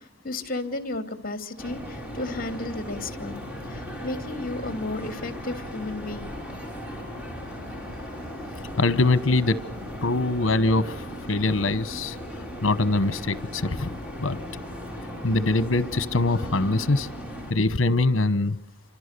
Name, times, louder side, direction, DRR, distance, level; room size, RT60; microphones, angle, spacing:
voice 1, 0.0-3.4 3.7-6.3, left 2 dB, 45° left, 9 dB, 2.9 m, -33 dB
sound 1, 1.6-17.5, equal, 5° right, 6.0 m, -37 dB
voice 2, 8.8-9.6 10.0-12.2 12.6-14.4 15.2-17.1 17.5-18.6, left 2 dB, 80° left, 16 dB, 1.1 m, -23 dB
28.5 x 26.0 x 6.8 m, 0.65 s
head